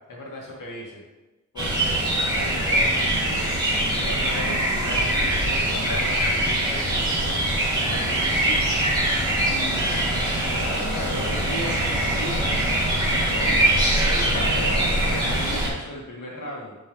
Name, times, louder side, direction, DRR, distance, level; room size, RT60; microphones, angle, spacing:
voice 1, 0.1-1.0 1.5-3.3 3.8-7.5 7.9-8.8 9.5-12.5 13.0-16.8, left 1 dB, 75° left, -3 dB, 2.3 m, -36 dB
sound 1, 1.6-15.7, right 1 dB, 15° right, 2.7 m, -23 dB
10.5 x 5.4 x 3.4 m, 1.1 s
wide cardioid pair, 95°, 31 cm